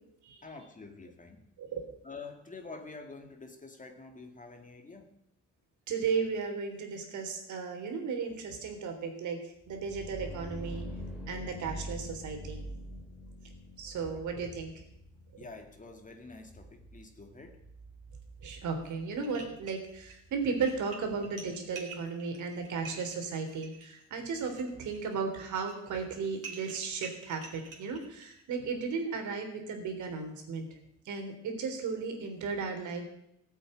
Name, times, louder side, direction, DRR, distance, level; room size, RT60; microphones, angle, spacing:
voice 1, 0.4-1.5 2.0-5.1 14.1-14.2 15.4-17.6, left 3 dB, 25° left, 2.2 m, -47 dB
voice 2, 5.9-9.4 9.7-10.8 11.3-12.6 13.8-14.7 18.4-30.7 31.1-33.0, right 5 dB, 75° right, 3.6 m, -35 dB
sound 1, 9.6-21.3, equal, 5° right, 4.5 m, -45 dB
sound 2, 18.8-18.9 19.2-20.1 20.5-28.4, right 5 dB, 50° right, 3.9 m, -48 dB
14.5 x 8.5 x 9.0 m
cardioid pair, 90°, 30 cm